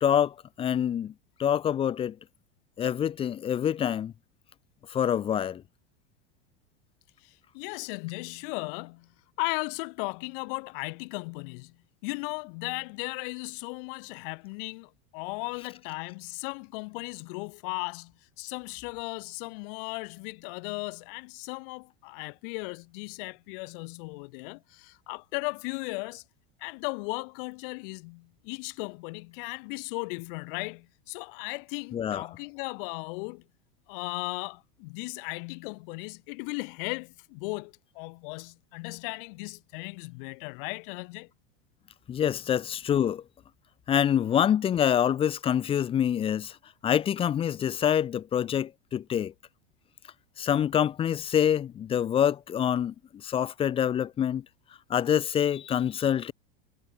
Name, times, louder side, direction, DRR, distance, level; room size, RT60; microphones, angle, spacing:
voice 1, 0.0-1.1 1.4-2.2 2.8-4.1 4.9-5.6 31.9-32.2 42.1-43.2 43.9-46.5 46.8-49.3 50.4-52.9 53.2-54.4 54.9-56.3, left 9 dB, 15° left, 0.6 m, -26 dB
voice 2, 7.2-9.1 9.4-11.7 12.0-26.2 26.6-33.4 33.9-41.3, left 31 dB, 55° left, 4.9 m, -36 dB
supercardioid pair, 155°, 32 cm